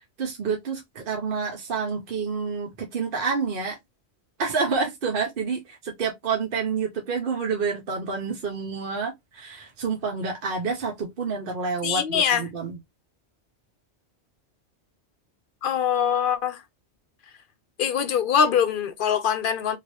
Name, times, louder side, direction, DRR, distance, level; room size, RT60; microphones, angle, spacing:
voice 1, 0.2-3.8 4.4-12.8, right 5 dB, 55° right, 1.0 m, -28 dB
voice 2, 11.8-12.4 15.6-16.6 17.8-19.8, left 8 dB, 60° left, 0.7 m, -23 dB
3.0 x 2.9 x 3.0 m
omnidirectional pair, 1.1 m